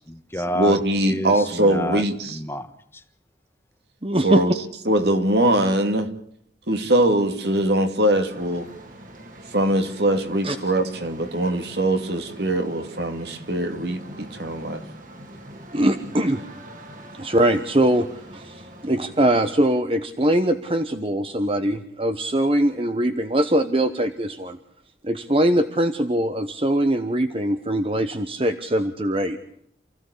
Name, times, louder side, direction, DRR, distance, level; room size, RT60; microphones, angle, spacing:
voice 1, 0.0-3.0, left 1 dB, 15° left, 8 dB, 1.5 m, -30 dB
voice 2, 0.5-2.4 4.2-4.5 4.9-6.1 6.7-8.7 9.5-14.8, right 1 dB, 70° right, 7 dB, 2.6 m, -22 dB
voice 3, 4.0-4.4 10.4-10.6 15.7-16.4 17.2-24.6 25.0-29.4, right 1 dB, 30° right, 8 dB, 1.1 m, -22 dB
sound 1, 8.3-19.8, right 1 dB, 45° right, 3.1 m, -43 dB
29.0 x 15.5 x 8.5 m, 0.70 s
head